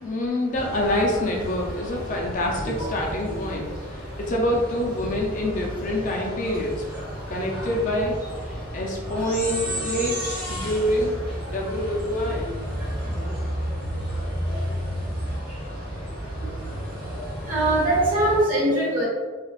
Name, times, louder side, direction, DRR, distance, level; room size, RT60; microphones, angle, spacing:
voice 1, 0.0-8.1 8.5-11.1 11.5-12.6 13.1-13.2 13.5-13.6 16.3-17.1, left 1 dB, 35° left, -1 dB, 0.4 m, -27 dB
sound 1, 0.5-18.4, equal, 5° left, 1.4 m, -32 dB
voice 2, 17.5-19.1, right 1 dB, 40° right, -7 dB, 1.2 m, -21 dB
3.2 x 2.4 x 2.4 m, 1.5 s
head